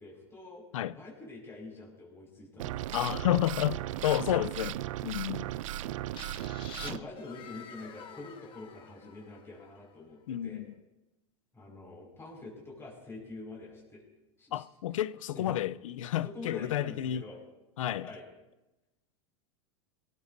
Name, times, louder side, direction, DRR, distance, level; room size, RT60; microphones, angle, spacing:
voice 1, 0.0-0.6 0.9-3.3 6.5-10.6 11.5-14.0 14.4-14.6 15.3-15.5 16.3-17.4 18.0-18.2, left 2 dB, 15° left, 5.3 m, -46 dB
sound 1, 2.6-7.0, right 14 dB, 80° right, 0.5 m, -36 dB
voice 2, 2.9-5.4 10.3-10.7 14.5-17.2 17.8-18.1, left 12 dB, 90° left, 0.6 m, -31 dB
sound 2, 6.1-9.9, left 7 dB, 30° left, 1.5 m, -48 dB
23.5 x 17.0 x 2.7 m
supercardioid pair, 120°, 16 cm